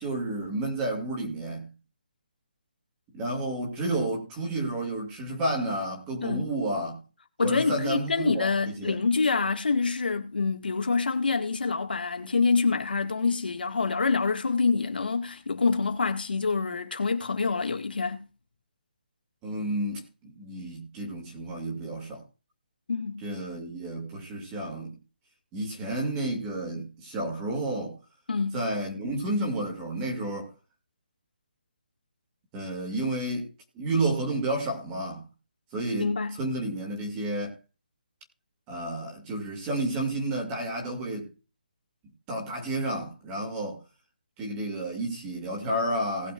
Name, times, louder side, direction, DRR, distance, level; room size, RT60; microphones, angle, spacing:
voice 1, 0.0-1.7 3.1-7.0 7.4-9.0 19.4-22.2 23.2-25.0 25.5-28.0 28.5-30.5 32.5-33.5 33.7-35.3 35.7-37.6 38.7-41.3 42.3-43.8 44.4-46.3, right 1 dB, 15° right, 2.3 m, -31 dB
voice 2, 7.4-18.3 22.9-23.2 28.3-28.6 36.0-36.4 36.7-36.8, left 4 dB, 85° left, 2.0 m, -26 dB
19.5 x 6.7 x 2.5 m
hypercardioid pair, 170°, 5 cm